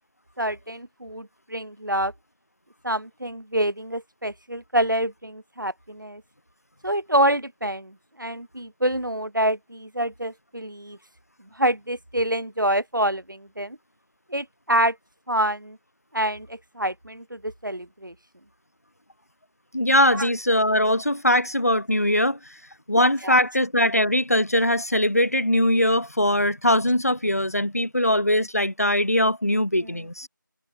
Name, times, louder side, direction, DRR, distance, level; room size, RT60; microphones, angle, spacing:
voice 1, 0.4-2.1 2.8-6.2 6.8-11.0 11.5-13.8 14.3-15.0 15.3-15.8 16.1-18.1 20.1-20.3 23.2-23.4 29.8-30.0, right 1 dB, 70° right, 6.1 m, -26 dB
voice 2, 19.7-22.6 22.9-30.3, left 1 dB, 45° left, 3.9 m, -21 dB
figure-of-eight pair, 180°, 11 cm